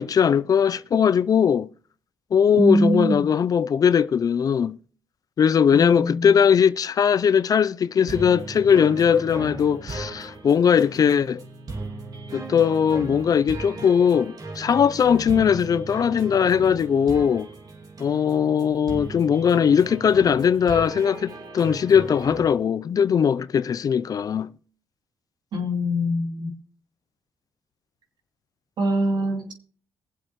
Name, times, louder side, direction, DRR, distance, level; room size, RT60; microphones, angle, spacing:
voice 1, 0.0-1.7 2.3-4.8 5.4-11.4 12.3-17.5 18.0-24.5, left 7 dB, 50° left, 0.5 m, -20 dB
voice 2, 2.6-3.3 5.7-6.4 25.5-26.6 28.8-29.5, equal, 65° right, 2.8 m, -23 dB
sound 1, 8.1-22.5, right 2 dB, 50° right, 2.5 m, -37 dB
22.0 x 7.7 x 3.1 m
supercardioid pair, 70°, 8 cm